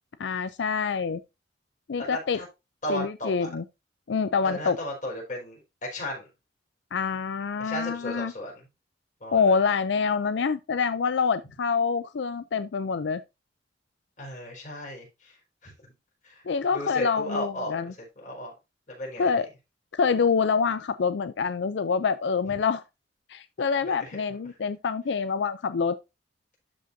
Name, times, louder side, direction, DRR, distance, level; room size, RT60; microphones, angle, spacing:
voice 1, 0.2-1.2 1.9-2.4 2.9-3.6 4.1-4.8 6.9-8.3 9.3-13.2 16.5-17.9 19.2-19.5 19.9-22.8 23.3-26.0, left 5 dB, 70° left, 0.4 m, -26 dB
voice 2, 2.1-2.5 2.8-3.5 4.4-6.3 7.6-8.6 9.2-9.6 14.2-15.4 15.6-15.7 16.2-16.4 16.7-17.8 18.2-18.5 18.9-19.4 23.8-24.2, equal, 45° left, 4.8 m, -35 dB
12.5 x 5.2 x 2.7 m
head